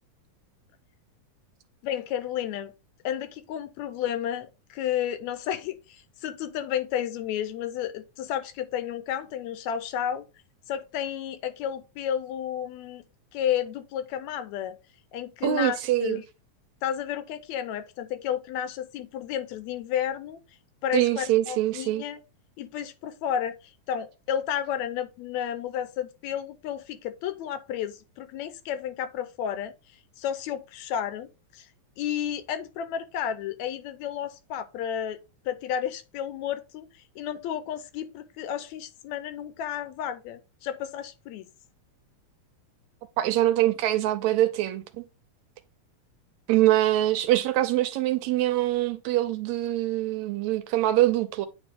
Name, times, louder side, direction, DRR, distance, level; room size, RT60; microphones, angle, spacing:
voice 1, 1.8-2.7 3.0-10.3 10.7-13.0 13.3-14.8 15.1-16.2 16.8-20.4 20.8-22.2 22.6-29.7 30.2-31.7 32.0-35.2 35.5-41.5, left 9 dB, 80° left, 1.8 m, -32 dB
voice 2, 15.4-16.2 20.9-22.0 43.2-45.0 46.5-51.5, right 14 dB, 80° right, 1.8 m, -24 dB
8.9 x 3.1 x 3.5 m
omnidirectional pair, 3.4 m